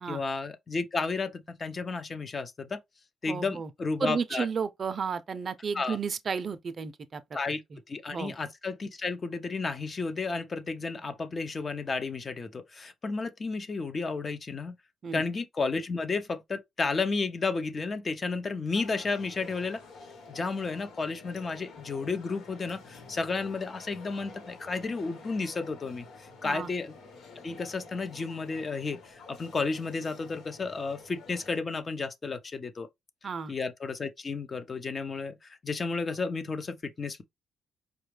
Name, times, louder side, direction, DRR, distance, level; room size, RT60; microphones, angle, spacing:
voice 1, 0.1-2.8 3.2-4.5 5.7-6.0 7.3-7.6 7.9-14.7 15.1-19.8 20.3-26.1 26.4-26.9 27.4-32.9 33.5-37.2, left 4 dB, 35° left, 0.7 m, -32 dB
voice 2, 3.3-3.7 4.0-7.2 8.1-8.3 15.0-15.2 26.4-26.7 33.2-33.5, right 5 dB, 45° right, 0.5 m, -32 dB
sound 1, 18.7-31.6, left 4 dB, 85° left, 1.4 m, -49 dB
4.9 x 2.3 x 3.2 m
cardioid pair, 90°, 0 cm